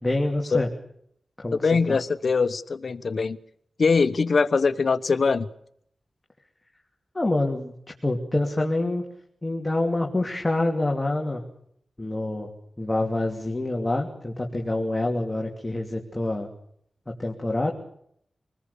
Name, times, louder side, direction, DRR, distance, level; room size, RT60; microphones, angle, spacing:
voice 1, 0.0-0.7 1.4-2.0 7.1-7.7 8.0-9.0 9.4-11.4 12.0-12.5 12.8-16.5 17.2-17.7, left 2 dB, 15° left, 1 dB, 2.9 m, -26 dB
voice 2, 1.6-3.4 3.8-5.5, left 4 dB, 60° left, 12 dB, 1.2 m, -22 dB
26.0 x 20.0 x 7.0 m, 0.69 s
wide cardioid pair, 85°, 0 cm